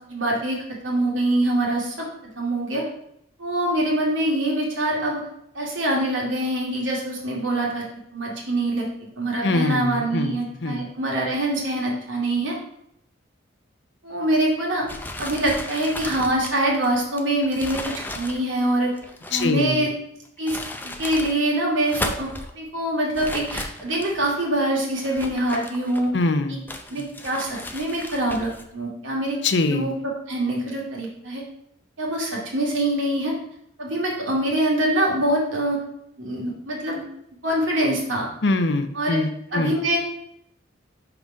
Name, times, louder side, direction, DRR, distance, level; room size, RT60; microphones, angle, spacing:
voice 1, 0.1-0.6 0.8-2.8 3.4-5.2 5.5-7.8 8.1-12.6 14.0-14.9 15.2-18.9 19.3-19.9 20.4-20.6 20.8-22.3 22.5-26.1 26.5-26.6 26.9-29.4 29.7-29.9 30.3-31.4 32.0-33.3 33.8-35.8 36.2-37.0 37.4-38.3 38.9-39.2 39.5-40.0, right 1 dB, 75° right, -3 dB, 2.2 m, -24 dB
voice 2, 9.4-10.9 19.3-19.9 26.1-26.6 26.9-27.1 29.4-29.9 38.4-39.8, left 2 dB, 60° left, 9 dB, 0.6 m, -24 dB
sound 1, 14.9-19.6 20.2-21.4 21.7-22.5 23.1-24.3 24.9-26.2 26.7-28.7, left 1 dB, 10° left, 0.5 m, -35 dB
5.8 x 5.2 x 5.2 m, 0.75 s
head